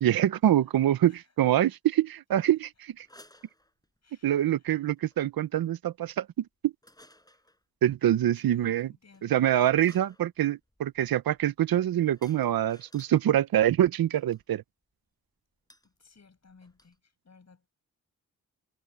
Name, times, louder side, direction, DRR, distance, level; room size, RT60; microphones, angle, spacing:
voice 1, 0.0-1.1 1.4-3.1 4.2-6.7 7.8-8.9 9.2-14.6, right 12 dB, 85° right, 0.7 m, -25 dB
sound 1, 3.0-4.2 5.0-5.2 6.8-7.6 9.1-9.3 9.9-13.2 14.1-14.4 15.7-15.9 16.2-16.3 16.5-17.0, left 1 dB, 10° left, 5.9 m, -58 dB
voice 2, 4.0-4.8 8.3-9.4 9.7-10.0 15.8-17.7, left 4 dB, 50° left, 6.7 m, -59 dB
cardioid pair, 60°, 35 cm